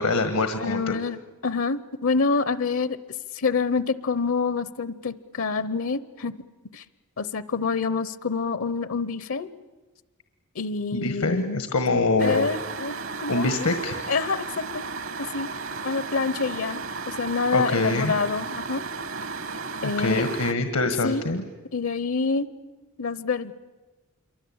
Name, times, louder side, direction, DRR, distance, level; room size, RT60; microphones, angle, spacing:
voice 1, 0.0-1.0 10.9-12.5 13.3-14.0 17.5-18.1 19.8-21.4, left 3 dB, 90° left, 8 dB, 1.5 m, -24 dB
voice 2, 0.6-3.0 3.3-6.4 6.7-6.8 7.2-9.5 10.5-11.6 12.2-13.7 14.1-14.8 15.3-15.5 15.8-18.8 19.8-20.2 21.0-21.3 21.7-22.5 23.0-23.5, left 4 dB, 65° left, 15 dB, 0.8 m, -27 dB
sound 1, 12.2-20.5, right 4 dB, 60° right, 1.1 m, -34 dB
27.0 x 24.0 x 8.7 m, 1.2 s
head